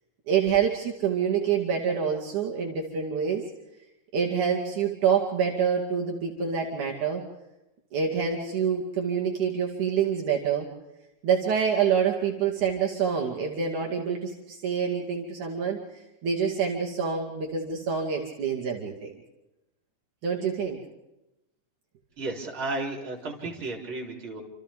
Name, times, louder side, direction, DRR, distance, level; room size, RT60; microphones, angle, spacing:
voice 1, 0.3-3.4 4.1-7.2 7.9-10.7 11.2-15.8 16.2-19.1 20.2-20.8, right 7 dB, 65° right, -2 dB, 3.8 m, -26 dB
voice 2, 22.2-24.4, right 2 dB, 35° right, -2 dB, 4.6 m, -33 dB
29.5 x 27.5 x 3.6 m, 0.93 s
omnidirectional pair, 3.8 m